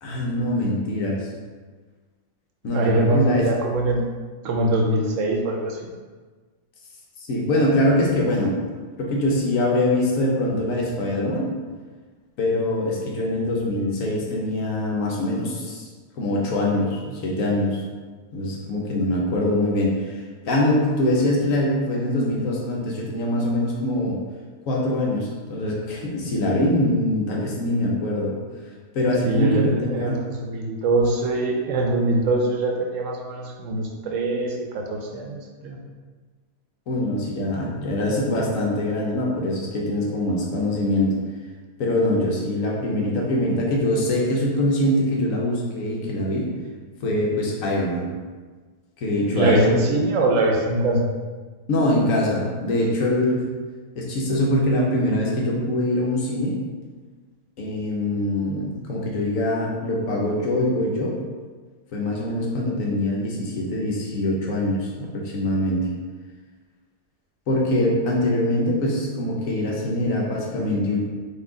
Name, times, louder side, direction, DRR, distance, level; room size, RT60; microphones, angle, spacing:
voice 1, 0.0-1.2 2.6-3.5 7.2-8.6 9.0-11.5 12.4-15.9 16.2-17.8 18.3-20.1 20.4-24.2 24.7-28.3 28.9-30.2 36.9-41.2 41.8-46.5 47.0-48.1 49.0-49.8 51.7-53.4 54.0-56.6 57.6-61.2 61.9-65.9 67.5-71.0, left 1 dB, 70° left, -2 dB, 1.2 m, -23 dB
voice 2, 2.7-4.0 4.4-5.9 29.2-35.8 49.3-51.1, right 2 dB, 70° right, 1 dB, 0.9 m, -23 dB
4.1 x 2.7 x 3.7 m, 1.4 s
omnidirectional pair, 1.4 m